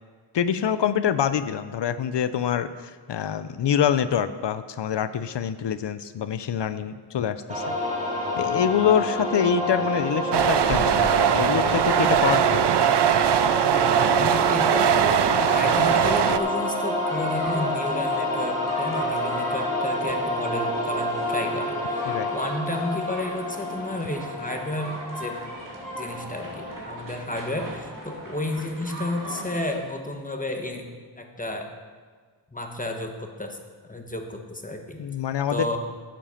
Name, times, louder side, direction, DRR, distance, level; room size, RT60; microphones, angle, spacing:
voice 1, 0.3-7.7 8.4-12.7 22.1-22.3 35.0-35.8, left 8 dB, 70° left, 12 dB, 0.6 m, -25 dB
sound 1, 7.5-26.7, left 1 dB, 15° right, 2.1 m, -28 dB
sound 2, 10.3-16.4, right 9 dB, 65° right, 0.6 m, -21 dB
voice 2, 14.1-22.0 22.3-25.4 26.0-31.7 32.5-33.6 33.9-35.0 35.5-35.8, left 1 dB, 20° left, 3 dB, 1.3 m, -32 dB
sound 3, 17.0-29.8, right 1 dB, 45° right, 2.5 m, -40 dB
10.0 x 7.7 x 5.7 m, 1.5 s
wide cardioid pair, 65°, 44 cm